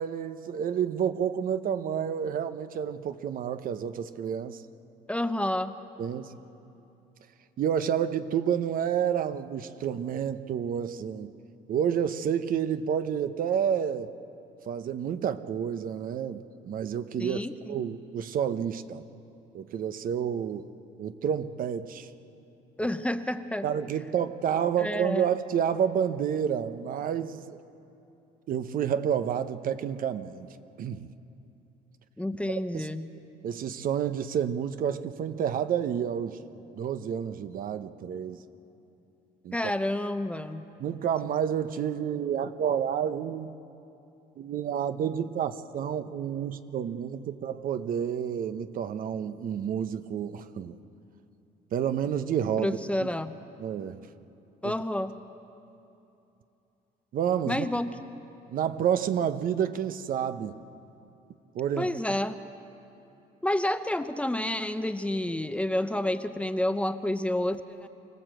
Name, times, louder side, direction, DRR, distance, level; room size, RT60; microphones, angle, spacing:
voice 1, 0.0-4.6 6.0-6.3 7.6-11.3 11.7-14.1 14.7-17.4 17.7-19.0 19.5-20.6 21.0-22.1 22.8-22.9 23.6-27.6 28.5-30.5 30.8-31.1 32.5-32.9 33.4-36.4 36.8-38.4 39.4-39.6 40.8-43.5 44.4-50.8 51.7-52.8 53.6-54.0 54.6-54.7 57.1-57.7 58.5-60.6 61.5-61.9, right 8 dB, 55° right, 11 dB, 0.9 m, -29 dB
voice 2, 5.1-5.8 17.2-17.9 22.8-23.7 24.8-25.3 32.2-33.1 39.5-40.6 52.6-53.3 54.6-55.1 57.5-58.1 61.8-62.4 63.4-67.9, left 1 dB, 5° left, 10 dB, 0.8 m, -29 dB
25.0 x 17.0 x 7.8 m, 2.8 s
cardioid pair, 110°, 17 cm